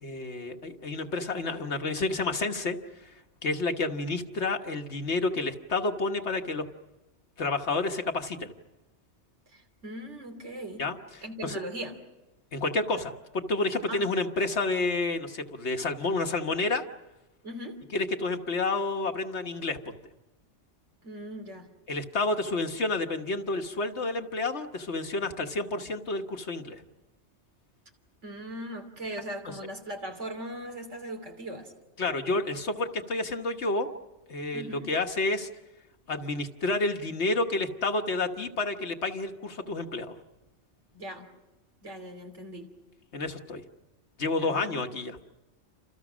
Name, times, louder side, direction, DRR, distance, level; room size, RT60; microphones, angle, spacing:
voice 1, 0.0-3.1 3.4-6.7 7.4-8.5 10.8-11.6 12.5-16.8 17.9-20.0 21.9-26.8 29.5-29.6 32.0-33.9 34.3-35.5 36.1-40.2 43.1-43.6 44.2-45.2, left 3 dB, 65° left, 5 dB, 1.7 m, -30 dB
voice 2, 9.5-10.9 11.2-12.0 13.9-14.1 17.4-17.8 21.0-21.7 28.2-31.7 34.5-34.9 40.9-41.3 41.8-42.8 44.4-44.8, right 1 dB, 75° right, 4 dB, 3.3 m, -39 dB
29.0 x 27.0 x 6.2 m, 1.0 s
omnidirectional pair, 1.2 m